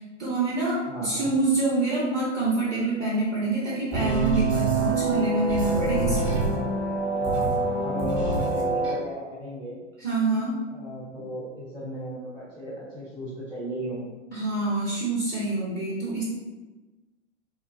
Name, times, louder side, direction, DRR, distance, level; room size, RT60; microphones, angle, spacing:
voice 1, 0.0-6.5 10.0-10.6 14.3-16.2, right 2 dB, 25° right, -7 dB, 0.7 m, -26 dB
voice 2, 0.9-1.3 7.2-9.8 10.7-14.0, equal, 85° right, -10 dB, 1.3 m, -36 dB
sound 1, 3.9-8.9, right 3 dB, 45° right, 1.1 m, -25 dB
3.9 x 2.5 x 2.3 m, 1.2 s
figure-of-eight pair, 90°, 37 cm